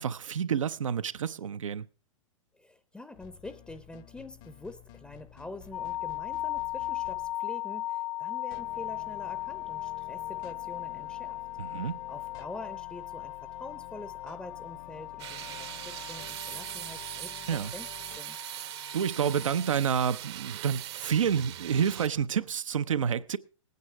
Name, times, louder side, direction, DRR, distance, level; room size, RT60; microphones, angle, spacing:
voice 1, 0.0-1.9 11.6-12.0 17.5-17.7 18.9-23.4, right 7 dB, 75° right, 0.6 m, -29 dB
voice 2, 2.5-11.4 12.1-17.9 18.2-18.4, left 2 dB, 5° left, 0.6 m, -46 dB
sound 1, 3.1-7.4 8.5-18.2, left 13 dB, 40° left, 0.8 m, -51 dB
sound 2, 5.7-19.7, left 15 dB, 90° left, 1.7 m, -38 dB
sound 3, 15.2-22.1, right 13 dB, 55° right, 1.0 m, -40 dB
18.5 x 9.6 x 4.6 m
figure-of-eight pair, 110°, 17 cm